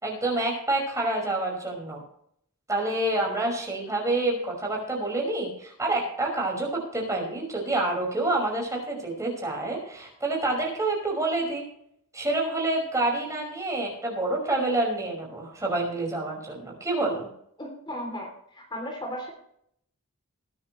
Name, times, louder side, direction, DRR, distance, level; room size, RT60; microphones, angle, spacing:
voice 1, 0.0-2.0 2.7-11.6 12.1-17.3, right 2 dB, 15° right, -1 dB, 5.6 m, -28 dB
voice 2, 17.6-18.3 18.5-19.3, equal, 20° left, 1 dB, 3.1 m, -35 dB
21.5 x 10.5 x 3.2 m, 0.70 s
head